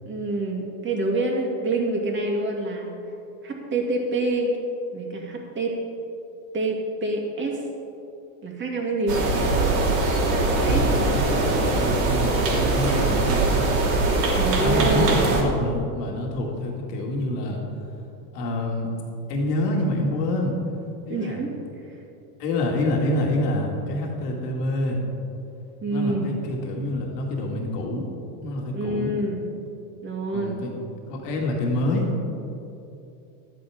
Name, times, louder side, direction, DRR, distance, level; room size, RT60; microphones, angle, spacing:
voice 1, 0.1-2.9 3.4-4.6 4.9-5.8 6.5-7.6 8.4-9.6 10.3-10.9 14.3-15.5 21.1-21.5 25.8-26.3 28.7-29.5 30.0-30.6, right 2 dB, 25° right, 0 dB, 2.2 m, -27 dB
sound 1, 9.1-15.4, right 2 dB, 80° right, 2.7 m, -22 dB
voice 2, 10.6-13.6 14.6-17.6 18.3-18.9 19.3-20.6 21.1-21.4 22.4-25.0 25.9-28.1 28.4-29.1 30.3-30.7 31.1-32.1, left 1 dB, 80° left, -1 dB, 2.2 m, -27 dB
12.5 x 9.1 x 4.9 m, 2.8 s
supercardioid pair, 120°, 48 cm